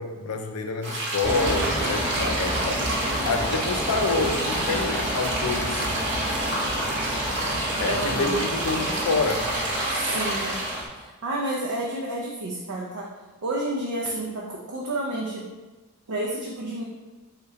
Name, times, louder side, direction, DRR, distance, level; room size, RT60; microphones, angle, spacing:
voice 1, 0.0-2.8 3.2-5.9 7.8-9.5, left 3 dB, 85° left, 5 dB, 0.5 m, -27 dB
sound 1, 0.8-10.8, right 1 dB, 55° right, 0.8 m, -29 dB
sound 2, 1.2-10.9, equal, 10° right, 0.6 m, -30 dB
voice 2, 7.8-8.4 9.9-10.6 10.9-13.1 13.4-15.5 16.1-16.8, right 1 dB, 80° right, -3 dB, 0.5 m, -30 dB
4.3 x 3.0 x 3.6 m, 1.2 s
head